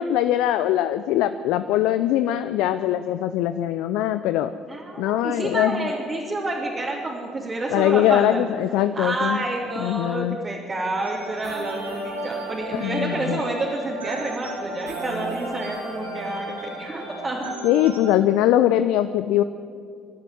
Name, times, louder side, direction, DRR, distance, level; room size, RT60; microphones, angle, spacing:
voice 1, 0.0-4.5 5.0-5.9 7.7-9.5 9.8-10.4 12.7-13.4 17.6-19.4, left 12 dB, 60° left, 12 dB, 0.6 m, -22 dB
voice 2, 4.7-8.4 8.9-17.6, right 2 dB, 30° right, -4 dB, 3.5 m, -29 dB
sound 1, 11.0-18.1, right 1 dB, 85° right, 3.6 m, -34 dB
22.5 x 12.0 x 9.7 m, 2.4 s
figure-of-eight pair, 50°, 0 cm